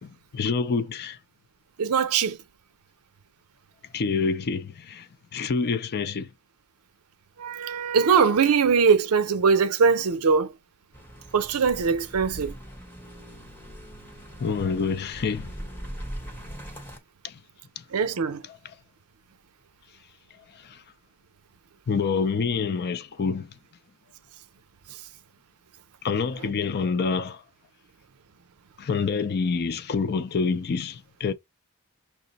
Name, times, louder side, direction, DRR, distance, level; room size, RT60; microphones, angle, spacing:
voice 1, 0.0-1.2 3.9-6.3 14.4-15.5 17.2-17.4 20.6-20.8 21.9-23.5 26.0-27.4 28.8-31.3, left 5 dB, 50° left, 0.4 m, -27 dB
voice 2, 1.8-2.4 7.4-10.5 11.3-12.5 17.9-18.4, right 5 dB, 80° right, 0.5 m, -21 dB
sound 1, 10.9-17.0, equal, 10° left, 0.9 m, -40 dB
5.8 x 2.0 x 3.9 m
head